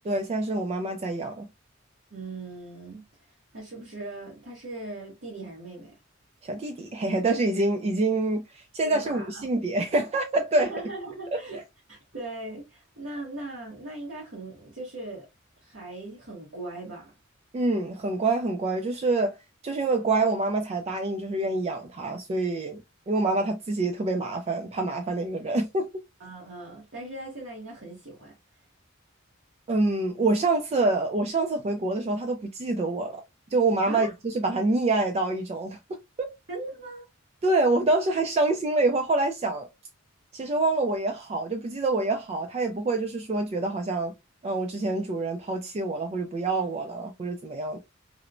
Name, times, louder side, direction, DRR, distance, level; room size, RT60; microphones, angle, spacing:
voice 1, 0.0-1.5 6.4-10.7 11.3-11.4 17.5-19.3 19.6-22.8 23.1-25.9 29.7-33.2 33.5-36.3 37.4-39.7 40.3-44.1 44.4-47.8, right 2 dB, 30° right, 0.3 m, -26 dB
voice 2, 2.1-3.1 3.5-6.0 8.8-9.5 10.6-11.6 11.9-15.3 15.6-17.1 26.2-28.4 33.9-34.1 36.5-37.1, right 2 dB, 60° right, 1.0 m, -39 dB
3.0 x 2.0 x 2.4 m
head